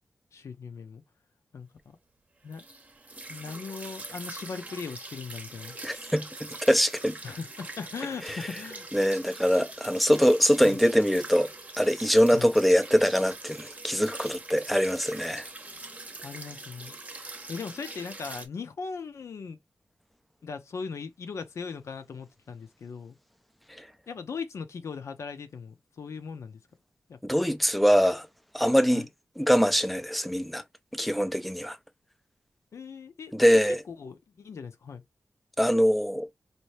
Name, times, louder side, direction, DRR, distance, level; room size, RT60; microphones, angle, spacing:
voice 1, 0.3-1.0 1.5-1.7 2.4-2.6 3.3-5.8 7.2-8.9 10.6-10.8 12.3-12.5 16.2-17.0 17.5-19.6 20.4-23.2 24.1-26.6 27.1-27.2 28.9-29.1 32.7-33.6 33.9-35.0, left 5 dB, 75° left, 0.6 m, -39 dB
sound 1, 2.5-18.5, right 2 dB, 25° right, 0.8 m, -43 dB
voice 2, 5.8-7.2 8.3-8.4 8.9-11.5 11.8-15.4 27.2-28.3 28.5-29.1 29.4-30.6 30.9-31.8 33.3-33.8 35.6-36.3, equal, ahead, 0.4 m, -23 dB
4.2 x 2.6 x 3.2 m
wide cardioid pair, 120°, 5 cm